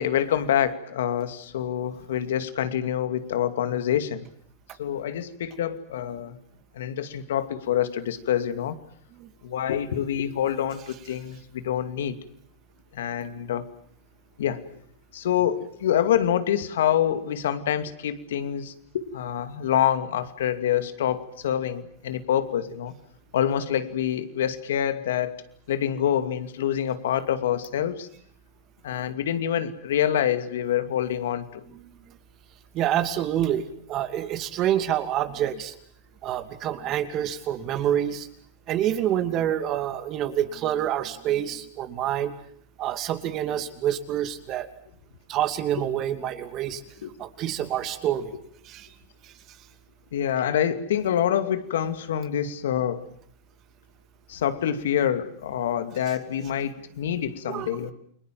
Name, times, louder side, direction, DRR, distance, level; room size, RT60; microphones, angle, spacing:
voice 1, 0.0-4.2 4.8-6.4 6.8-8.8 9.4-12.2 12.9-13.6 14.4-14.6 15.1-22.9 23.3-25.4 25.7-28.1 28.8-31.6 47.0-47.1 50.1-53.1 54.3-57.9, left 10 dB, 80° left, 10 dB, 2.5 m, -26 dB
voice 2, 32.7-35.7 36.2-38.3 38.7-42.3 42.8-44.7 45.3-46.8 47.2-48.3 48.7-48.9 57.5-57.7, right 11 dB, 40° right, 9 dB, 2.7 m, -27 dB
29.5 x 22.0 x 7.7 m, 0.64 s
hypercardioid pair, 120°, 0 cm